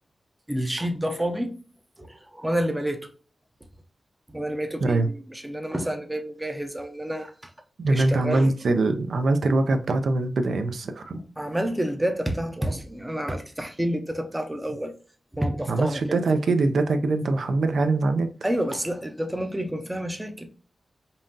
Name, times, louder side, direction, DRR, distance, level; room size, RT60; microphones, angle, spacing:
voice 1, 0.5-1.5 2.0-3.1 4.3-7.5 7.9-8.5 11.4-14.9 15.3-16.2 18.4-20.5, right 1 dB, 10° right, 0.5 m, -29 dB
voice 2, 7.8-11.1 15.7-18.3, right 2 dB, 70° right, 0.5 m, -23 dB
5.4 x 2.5 x 2.6 m
wide cardioid pair, 165°, 0 cm